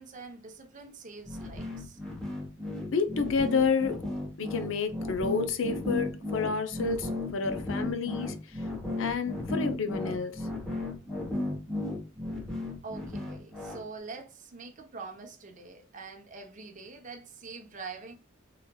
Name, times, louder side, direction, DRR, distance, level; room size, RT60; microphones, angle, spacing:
voice 1, 0.0-2.0 12.6-18.1, right 4 dB, 40° right, 0.7 m, -44 dB
sound 1, 1.3-13.8, left 2 dB, 5° left, 0.9 m, -34 dB
voice 2, 2.9-4.1 4.4-8.4 9.0-10.5, left 5 dB, 70° left, 0.6 m, -29 dB
3.9 x 2.9 x 2.2 m
head